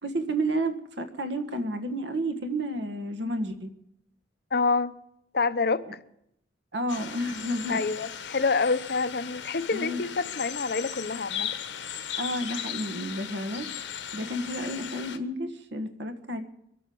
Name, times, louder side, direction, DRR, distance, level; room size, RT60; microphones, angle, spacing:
voice 1, 0.0-3.7 6.7-7.8 9.7-10.0 12.2-13.7 14.1-16.4, right 1 dB, 65° right, 1.6 m, -31 dB
voice 2, 4.5-5.0 5.3-5.9 7.7-11.5, left 4 dB, 55° left, 0.8 m, -27 dB
sound 1, 6.9-15.2, left 9 dB, 70° left, 1.2 m, -37 dB
22.5 x 8.5 x 7.0 m
head